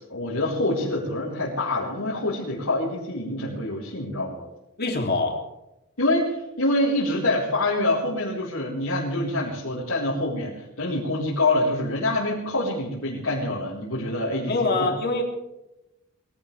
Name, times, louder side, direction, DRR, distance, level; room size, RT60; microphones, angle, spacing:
voice 1, 0.1-4.5 6.0-14.5 14.8-14.9, left 2 dB, 75° left, -8 dB, 4.4 m, -26 dB
voice 2, 4.8-5.4 14.4-15.2, left 2 dB, 50° left, 2 dB, 3.1 m, -24 dB
22.5 x 16.5 x 3.5 m, 0.92 s
head